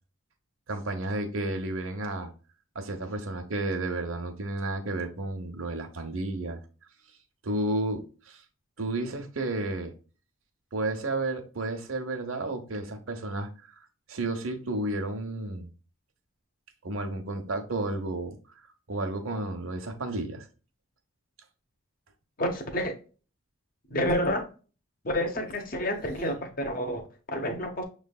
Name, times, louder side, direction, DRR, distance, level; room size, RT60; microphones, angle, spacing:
voice 1, 0.7-2.3 2.7-6.6 7.4-8.4 8.8-9.9 10.7-13.8 14.1-15.7 16.8-18.4 18.9-20.5, right 2 dB, 75° right, 0.9 m, -32 dB
voice 2, 22.4-22.9 23.9-24.4 25.0-27.8, left 1 dB, 40° left, 0.8 m, -29 dB
6.4 x 3.2 x 2.3 m
head